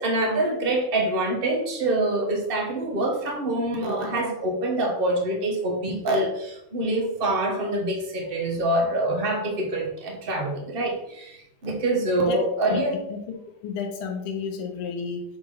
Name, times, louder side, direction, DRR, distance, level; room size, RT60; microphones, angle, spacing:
voice 1, 0.0-13.0, right 1 dB, 35° right, 1 dB, 0.9 m, -25 dB
voice 2, 13.6-15.2, left 5 dB, 85° left, 2 dB, 1.7 m, -31 dB
6.7 x 3.9 x 3.8 m, 0.79 s
omnidirectional pair, 2.4 m